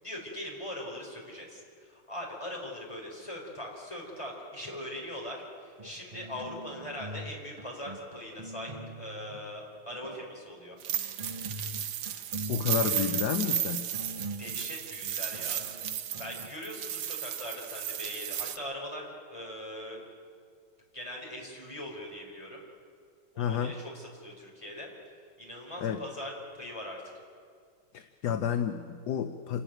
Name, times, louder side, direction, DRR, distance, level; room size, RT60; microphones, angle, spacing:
voice 1, 0.0-10.8 14.4-15.6 16.2-20.0 20.9-22.6 23.3-24.9 25.4-27.0, left 1 dB, 15° left, -1 dB, 4.4 m, -41 dB
sound 1, 5.8-7.3 7.6-9.4 9.9-10.3 10.9-16.5, right 1 dB, 25° right, 1.1 m, -43 dB
sound 2, 10.8-18.6, right 10 dB, 80° right, 1.8 m, -34 dB
voice 2, 12.5-13.9 23.4-23.8 25.8-26.0 27.9-29.6, left 8 dB, 65° left, 8 dB, 1.2 m, -30 dB
27.5 x 13.0 x 9.1 m, 2.1 s
omnidirectional pair, 2.2 m